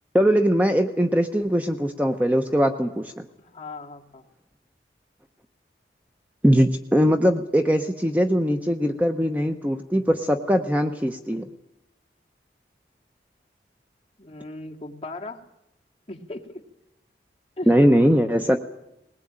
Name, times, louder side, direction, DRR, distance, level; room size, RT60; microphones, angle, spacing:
voice 1, 0.1-3.3 6.4-11.5 17.7-18.6, equal, 10° right, 6 dB, 0.8 m, -21 dB
voice 2, 3.4-4.2 14.2-15.4 16.1-16.6 17.6-17.7, left 2 dB, 30° left, 1 dB, 2.1 m, -37 dB
20.0 x 19.0 x 8.8 m, 0.88 s
head